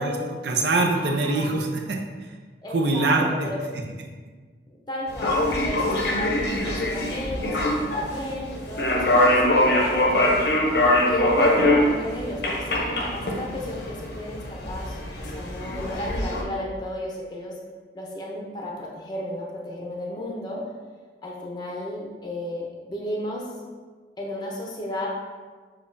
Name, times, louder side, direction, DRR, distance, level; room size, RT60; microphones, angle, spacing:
voice 1, 0.0-2.0 2.7-3.5, right 2 dB, 70° right, 1 dB, 0.6 m, -23 dB
voice 2, 1.0-1.5 2.6-3.6 4.9-10.5 11.1-17.5 17.9-20.6 21.2-23.4 24.2-25.1, left 1 dB, 25° left, -3 dB, 0.6 m, -33 dB
sound 1, 5.1-16.4, left 1 dB, 65° left, 0.6 m, -23 dB
6.9 x 2.3 x 2.6 m, 1.4 s
head